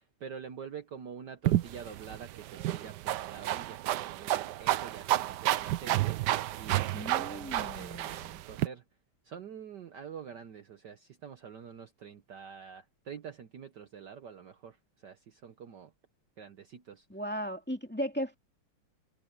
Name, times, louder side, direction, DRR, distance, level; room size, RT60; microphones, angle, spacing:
voice 1, 0.0-6.2 6.6-8.0 8.5-8.8 9.2-14.8 15.0-15.9 16.4-17.0, right 7 dB, 60° right, 1.5 m, -46 dB
sound 1, 1.4-8.7, right 14 dB, 75° right, 1.0 m, -31 dB
voice 2, 6.9-8.4 17.1-18.4, equal, 5° left, 2.4 m, -37 dB
omnidirectional pair, 2.4 m